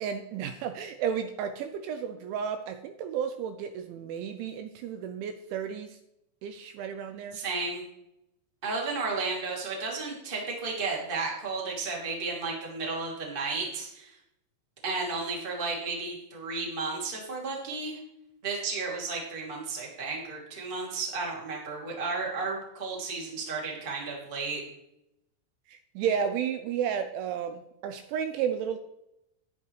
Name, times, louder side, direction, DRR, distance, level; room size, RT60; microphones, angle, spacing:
voice 1, 0.0-6.0 6.4-7.4 25.7-28.8, right 8 dB, 80° right, 8 dB, 2.8 m, -32 dB
voice 2, 7.3-7.8 8.6-14.1 14.8-18.0 18.4-24.6, right 4 dB, 20° right, -2 dB, 1.3 m, -33 dB
12.5 x 10.0 x 3.2 m, 0.83 s
omnidirectional pair, 5.8 m